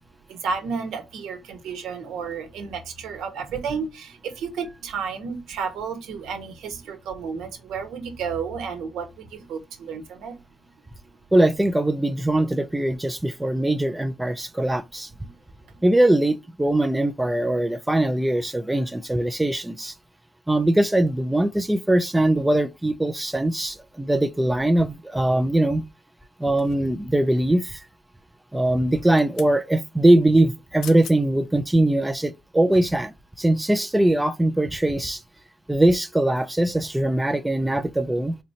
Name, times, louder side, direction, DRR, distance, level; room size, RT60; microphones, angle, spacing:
voice 1, 0.3-10.4 15.2-15.3, right 5 dB, 90° right, 1.2 m, -32 dB
voice 2, 11.3-15.1 15.8-19.9 20.5-25.8 26.4-27.8 28.5-35.2 35.7-38.4, right 1 dB, 5° right, 0.3 m, -21 dB
sound 1, 26.6-27.2 28.9-29.6 30.5-30.6 30.8-31.2 31.7-31.9, left 9 dB, 80° left, 0.5 m, -42 dB
4.1 x 3.0 x 2.7 m
cardioid pair, 135°, 0 cm